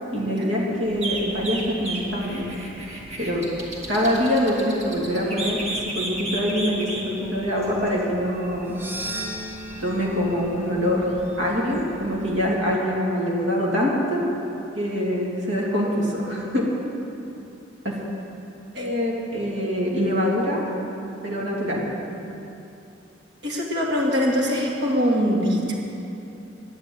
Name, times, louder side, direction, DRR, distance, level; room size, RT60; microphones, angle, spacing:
voice 1, 0.1-2.5 3.2-3.5 3.9-8.8 9.8-11.1 11.4-14.3 14.8-16.7 17.8-18.0 18.7-20.6 21.2-21.8, equal, 80° right, -4 dB, 2.7 m, -24 dB
sound 1, 0.9-12.5, right 2 dB, 35° right, 2.1 m, -35 dB
sound 2, 8.6-13.0, right 1 dB, 10° right, 0.9 m, -38 dB
voice 2, 23.4-25.8, equal, 60° right, -2 dB, 2.4 m, -23 dB
10.5 x 10.0 x 8.5 m, 2.9 s
head